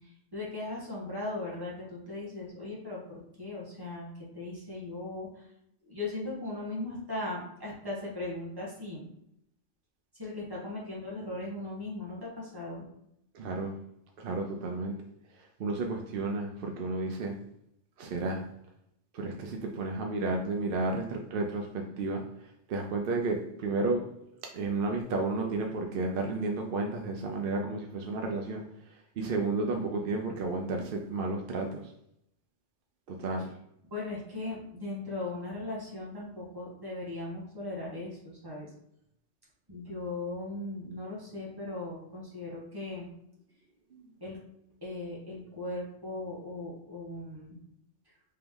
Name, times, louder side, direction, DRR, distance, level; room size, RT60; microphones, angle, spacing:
voice 1, 0.0-5.5 5.9-9.1 10.1-12.8 33.9-38.7 39.7-43.1 44.2-44.4 44.8-47.6, left 2 dB, 20° right, -5 dB, 1.2 m, -38 dB
voice 2, 13.3-13.8 14.2-15.0 15.6-17.3 18.0-18.5 19.1-22.2 22.7-24.1 24.5-28.6 29.2-31.8 33.1-33.5 43.9-44.1, right 3 dB, 60° right, 2 dB, 0.6 m, -32 dB
3.4 x 3.0 x 3.6 m, 0.76 s
omnidirectional pair, 1.3 m